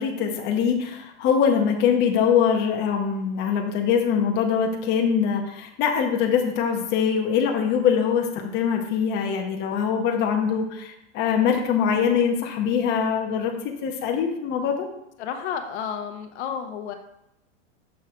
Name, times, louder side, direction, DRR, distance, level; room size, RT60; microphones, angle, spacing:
voice 1, 0.0-14.9, left 7 dB, 30° left, 2 dB, 0.7 m, -23 dB
voice 2, 15.2-16.9, left 7 dB, 65° left, 6 dB, 0.8 m, -31 dB
6.4 x 3.2 x 5.7 m, 0.83 s
supercardioid pair, 150°, 36 cm